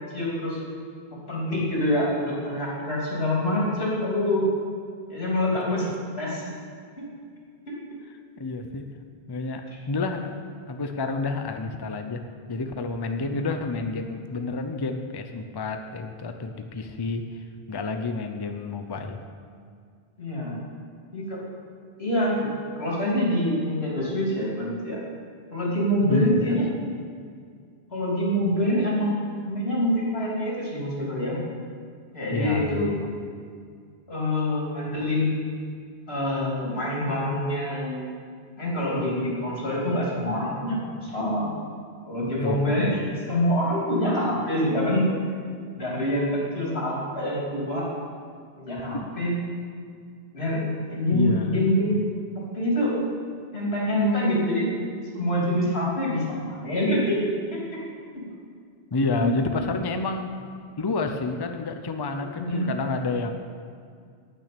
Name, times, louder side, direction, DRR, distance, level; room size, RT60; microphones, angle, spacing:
voice 1, 0.1-0.6 1.3-4.4 5.1-5.9 6.2-6.5 7.0-7.1 7.7-7.8 13.2-13.3 20.2-20.6 21.1-21.4 22.0-22.5 22.8-25.0 25.5-26.7 27.9-29.1 29.4-31.4 32.1-32.9 34.1-35.4 36.1-38.1 38.6-41.5 42.1-45.1 45.7-47.9 48.6-49.4 50.3-50.6 50.9-52.0 52.3-53.0 53.5-54.7 55.1-57.2 57.5-57.6 58.1-58.2 59.2-59.3 62.4-62.7, left 1 dB, 85° left, -5 dB, 3.3 m, -25 dB
voice 2, 8.4-8.9 9.3-10.3 10.7-12.2 12.5-19.2 26.1-26.6 32.3-33.1 42.4-42.7 48.9-49.1 51.1-51.6 58.9-60.3 60.8-63.3, left 3 dB, 30° left, 6 dB, 0.6 m, -29 dB
9.2 x 9.0 x 6.9 m, 2.2 s
omnidirectional pair, 1.0 m